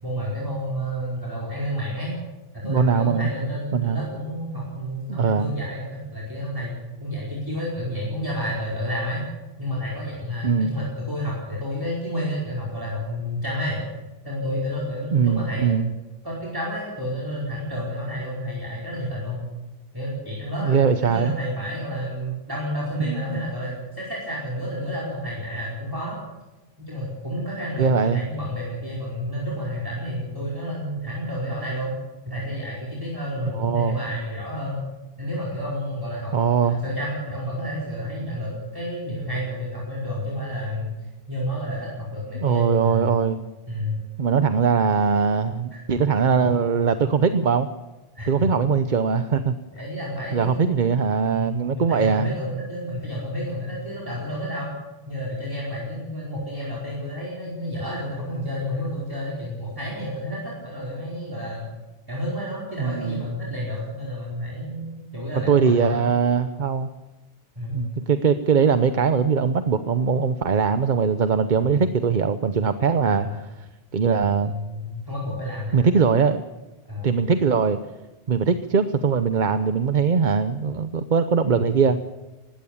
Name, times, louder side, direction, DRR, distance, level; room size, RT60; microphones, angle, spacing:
voice 1, 0.0-2.1 2.5-6.7 7.0-9.2 9.6-13.8 14.2-16.0 16.2-19.4 19.9-26.2 26.9-31.9 32.2-34.8 35.2-40.9 41.3-43.2 43.7-44.0 45.7-45.8 48.1-48.5 49.7-50.7 51.3-54.7 55.1-61.7 62.1-66.0 67.5-67.9 73.0-73.4 74.4-75.9 76.9-77.1, equal, 20° right, -5 dB, 4.9 m, -30 dB
voice 2, 2.6-3.3 3.7-4.0 5.1-5.5 10.4-10.7 15.1-15.9 20.6-21.3 23.0-23.4 27.8-28.2 33.6-34.0 36.3-36.8 42.4-43.4 44.2-47.7 48.3-49.6 50.3-52.3 62.8-63.2 65.5-66.9 67.7-73.3 73.9-74.5 75.7-76.4 77.0-77.8 78.3-82.0, right 6 dB, 45° right, 10 dB, 0.9 m, -21 dB
19.5 x 16.0 x 8.5 m, 1.1 s
omnidirectional pair, 1.2 m